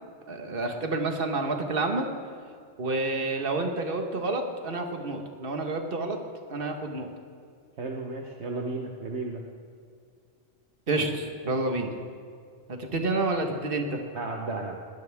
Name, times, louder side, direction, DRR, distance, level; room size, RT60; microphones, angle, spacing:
voice 1, 0.3-2.1 2.8-6.2 6.5-7.1 10.9-11.9 12.7-14.0, right 2 dB, 45° right, 4 dB, 1.6 m, -29 dB
voice 2, 7.8-9.4 14.1-14.8, right 3 dB, 60° right, 1 dB, 1.4 m, -33 dB
21.0 x 19.0 x 3.6 m, 2.2 s
omnidirectional pair, 1.3 m